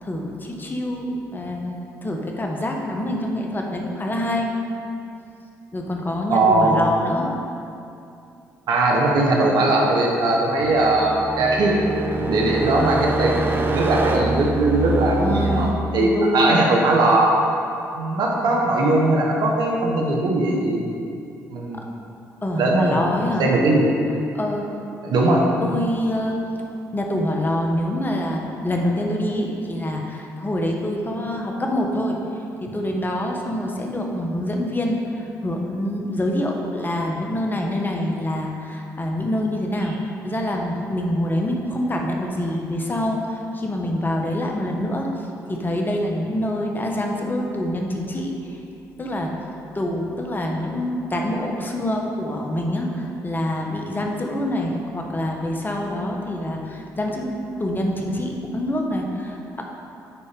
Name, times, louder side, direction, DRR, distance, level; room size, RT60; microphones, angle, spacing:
voice 1, 0.0-4.5 5.7-7.3 15.2-15.7 16.0-16.6 22.4-23.5 24.3-24.6 25.6-26.4 26.9-32.2 32.7-45.1 45.5-48.6 49.0-49.3 49.7-59.6, left 1 dB, 25° left, 1 dB, 1.3 m, -26 dB
voice 2, 6.3-6.8 8.7-11.7 12.2-17.4 17.9-20.8 21.5-21.8 22.6-23.1 23.4-23.9 25.0-25.4, right 2 dB, 70° right, -1 dB, 1.5 m, -19 dB
sound 1, 10.6-15.7, right 2 dB, 30° right, 1.0 m, -25 dB
9.3 x 4.3 x 5.3 m, 2.6 s
supercardioid pair, 60°, 7 cm